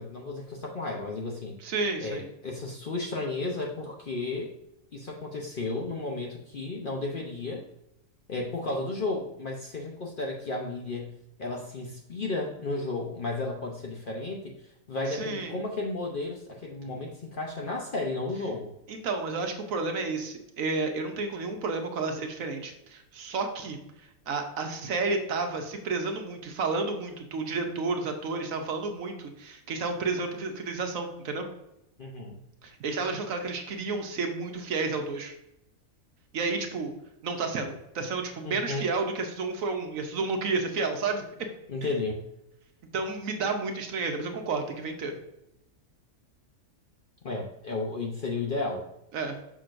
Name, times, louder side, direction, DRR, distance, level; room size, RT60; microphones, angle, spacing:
voice 1, 0.0-1.6 2.0-4.5 4.9-7.7 8.3-14.6 14.9-18.7 32.0-32.4 38.4-38.9 41.7-42.2 47.2-48.8, left 2 dB, 50° left, 0 dB, 0.7 m, -33 dB
voice 2, 1.6-2.3 15.1-15.6 18.9-23.8 24.3-31.5 32.6-35.3 36.3-36.9 37.2-41.2 42.9-45.1 49.1-49.4, right 3 dB, 70° right, 4 dB, 1.2 m, -31 dB
6.2 x 6.0 x 2.5 m, 0.83 s
omnidirectional pair, 1.5 m